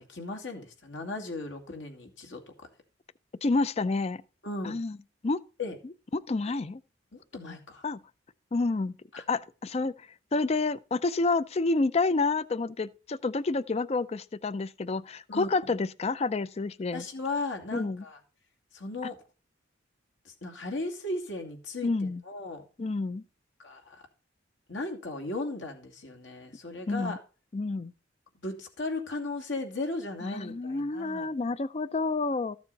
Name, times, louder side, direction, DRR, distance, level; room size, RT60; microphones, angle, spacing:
voice 1, 0.0-2.4 4.4-4.7 5.6-5.8 7.1-7.9 9.1-9.2 15.3-15.8 16.9-18.2 18.7-19.2 20.2-22.6 23.6-24.0 24.7-27.2 28.4-31.3, left 2 dB, 80° left, 2.4 m, -36 dB
voice 2, 3.4-4.2 4.6-5.0 5.2-5.4 6.1-6.8 7.4-7.6 7.8-8.0 8.5-9.0 9.3-9.9 10.3-17.0 17.7-18.0 21.8-22.2 22.8-23.2 26.9-27.2 27.5-27.9 30.2-32.6, left 3 dB, 35° left, 0.4 m, -29 dB
13.5 x 7.0 x 4.1 m
head